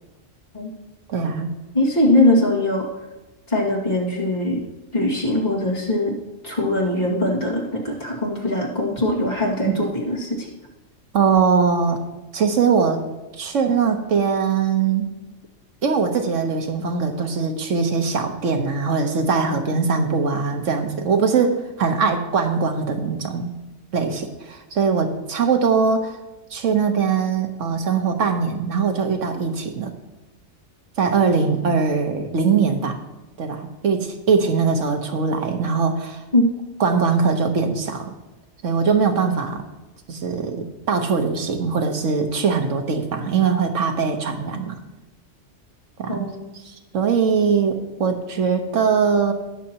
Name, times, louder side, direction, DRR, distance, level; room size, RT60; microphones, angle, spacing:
voice 1, 1.1-1.5 9.7-9.8 11.1-12.0 12.3-13.0 13.4-15.1 15.8-23.5 23.9-26.2 26.5-29.9 31.0-33.0 33.4-36.2 36.8-38.1 38.6-39.6 40.1-44.8 46.0-46.3 46.6-49.3, right 5 dB, 80° right, 5 dB, 1.4 m, -21 dB
voice 2, 1.7-2.9 3.5-4.6 4.9-6.2 6.4-10.5 31.6-31.7 36.3-36.4 46.1-46.5, left 1 dB, 35° left, -3 dB, 2.3 m, -21 dB
19.0 x 6.4 x 2.9 m, 1.1 s
omnidirectional pair, 1.3 m